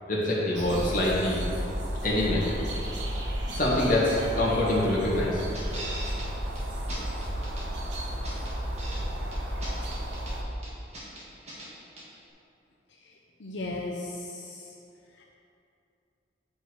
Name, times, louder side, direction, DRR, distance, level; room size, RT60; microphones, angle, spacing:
voice 1, 0.1-1.4 2.0-2.5 3.5-5.4, left 1 dB, 45° left, -6 dB, 1.9 m, -25 dB
sound 1, 0.5-10.4, equal, 75° right, 1.2 m, -33 dB
sound 2, 5.5-6.3 6.5-6.6 6.9-7.6 7.9-9.0 9.3-10.3 10.6-11.7 12.0-12.1, right 1 dB, 35° right, 1.7 m, -40 dB
voice 2, 12.9-14.7 15.1-15.3, left 2 dB, 85° left, -2 dB, 0.7 m, -38 dB
9.5 x 5.4 x 4.8 m, 2.6 s
head